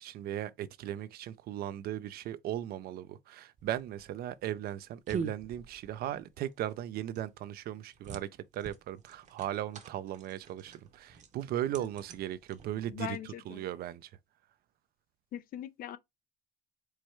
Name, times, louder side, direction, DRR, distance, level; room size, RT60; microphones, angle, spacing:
voice 1, 0.0-14.1, right 12 dB, 65° right, 0.4 m, -37 dB
sound 1, 3.6-13.1, right 5 dB, 45° right, 0.8 m, -45 dB
voice 2, 12.9-13.6 15.3-16.0, left 11 dB, 55° left, 0.4 m, -41 dB
4.7 x 2.1 x 4.4 m
cardioid pair, 110°, 17 cm